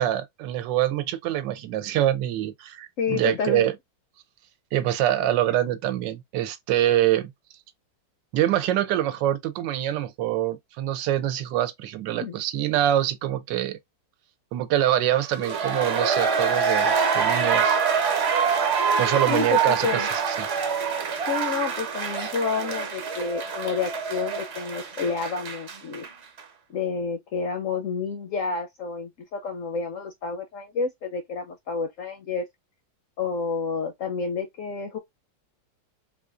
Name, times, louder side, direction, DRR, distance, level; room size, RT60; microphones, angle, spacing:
voice 1, 0.0-3.7 4.7-7.3 8.3-13.8 14.5-17.8 19.0-20.5, right 12 dB, 90° right, 1.3 m, -25 dB
voice 2, 3.0-3.7 12.2-12.3 19.3-20.1 21.2-26.1 26.7-32.4 33.2-35.0, left 5 dB, 70° left, 0.7 m, -29 dB
sound 1, 15.2-26.1 26.4-26.5, right 6 dB, 45° right, 1.0 m, -25 dB
4.0 x 2.5 x 2.4 m
omnidirectional pair, 1.9 m